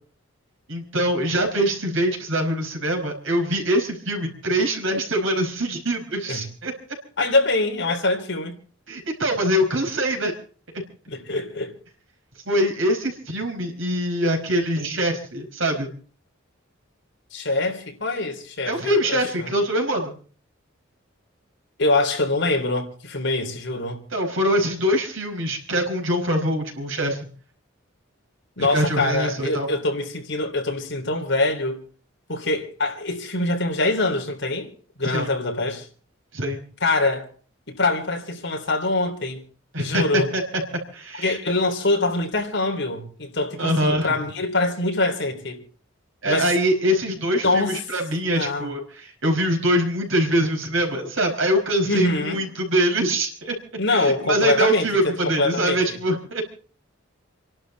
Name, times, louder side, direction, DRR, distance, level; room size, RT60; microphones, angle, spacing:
voice 1, 0.7-6.7 8.9-10.3 10.7-10.8 12.5-15.9 18.7-20.2 24.1-27.2 28.6-29.7 35.0-35.3 36.3-36.6 39.7-40.4 40.9-41.4 43.6-44.2 46.2-53.6 53.9-56.4, equal, 70° right, 5.1 m, -23 dB
voice 2, 7.2-8.6 11.1-11.8 17.3-19.5 21.8-24.0 28.6-31.8 32.3-34.7 35.0-35.9 36.8-37.3 37.7-39.4 39.8-40.3 41.2-45.6 46.3-46.5 47.4-47.8 48.3-48.7 51.9-52.5 53.8-56.0, left 2 dB, 60° left, 3.6 m, -24 dB
28.5 x 12.0 x 4.1 m
head